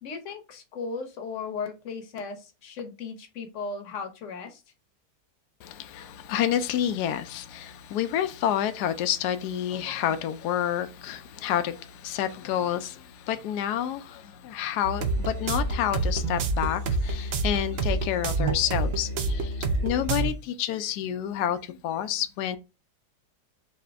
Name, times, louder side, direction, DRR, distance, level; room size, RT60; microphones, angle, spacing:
voice 1, 0.0-4.6, left 4 dB, 55° left, 1.0 m, -36 dB
voice 2, 5.6-22.6, left 10 dB, 75° left, 1.1 m, -29 dB
sound 1, 14.8-20.3, right 3 dB, 75° right, 0.5 m, -28 dB
4.1 x 2.8 x 3.4 m
omnidirectional pair, 1.8 m